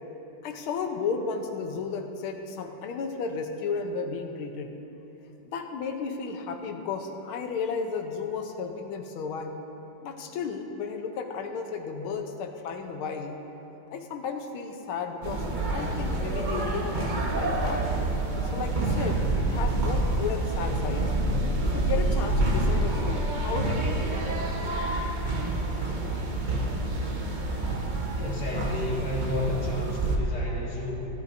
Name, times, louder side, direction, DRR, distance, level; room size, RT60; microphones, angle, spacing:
voice 1, 0.4-4.7 5.4-9.6 10.0-13.4 13.9-15.4 15.7-17.9 18.5-21.1 21.7-24.2, left 5 dB, 80° left, 4 dB, 1.7 m, -33 dB
sound 1, 15.2-30.2, right 2 dB, 55° right, 0.5 m, -27 dB
voice 2, 28.2-31.1, left 1 dB, 50° left, -5 dB, 2.4 m, -32 dB
15.0 x 14.0 x 2.6 m, 3.0 s
omnidirectional pair, 2.3 m